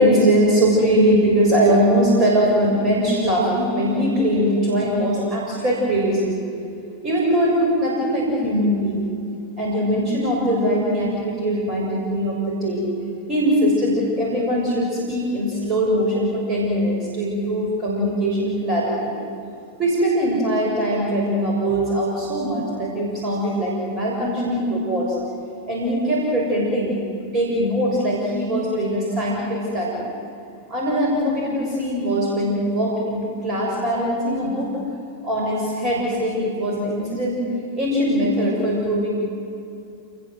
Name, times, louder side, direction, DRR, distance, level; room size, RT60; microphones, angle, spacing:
voice 1, 0.0-6.4 7.0-9.1 9.6-12.9 13.3-19.2 19.8-25.2 25.7-26.9 27.2-30.1 30.7-34.8 35.2-37.5 37.8-39.1, equal, 30° right, -3 dB, 6.9 m, -21 dB
28.0 x 21.0 x 8.1 m, 2.6 s
figure-of-eight pair, 90°, 0 cm